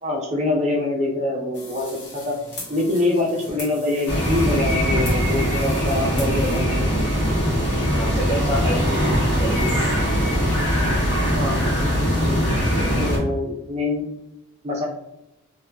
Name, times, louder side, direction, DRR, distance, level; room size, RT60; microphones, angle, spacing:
voice 1, 0.0-1.9 2.1-2.4 2.7-6.9 11.4-11.6 12.1-14.1 14.6-14.9, left 2 dB, 30° right, -2 dB, 0.6 m, -25 dB
sound 1, 1.5-6.6, left 1 dB, 50° left, 0.9 m, -39 dB
sound 2, 4.1-13.2, equal, 80° left, 1.0 m, -21 dB
voice 2, 7.9-10.0, equal, 20° left, -4 dB, 0.3 m, -28 dB
2.8 x 2.2 x 2.3 m, 0.91 s
head